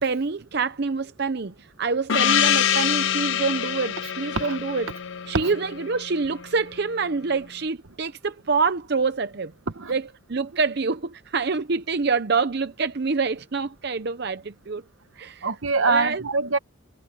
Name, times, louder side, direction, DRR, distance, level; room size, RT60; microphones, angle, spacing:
voice 1, 0.0-4.9 5.3-9.5 9.9-14.8 15.2-15.5 15.8-16.2, right 4 dB, 50° right, 0.7 m, -26 dB
Gong, 2.1-6.4, left 9 dB, 65° left, 0.8 m, -25 dB
voice 2, 15.4-16.6, right 3 dB, 75° right, 1.2 m, -24 dB
head